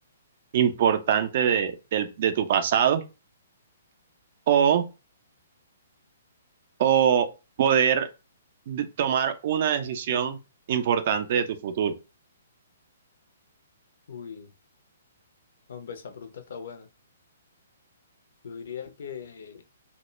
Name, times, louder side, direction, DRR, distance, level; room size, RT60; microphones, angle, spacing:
voice 1, 0.5-3.0 4.5-4.8 6.8-7.3 7.6-8.1 8.7-10.4 10.7-11.9, right 8 dB, 45° right, 0.3 m, -23 dB
voice 2, 14.1-14.5 15.7-16.9 18.4-19.6, left 7 dB, 55° left, 0.5 m, -40 dB
2.1 x 2.1 x 3.0 m
figure-of-eight pair, 120°, 0 cm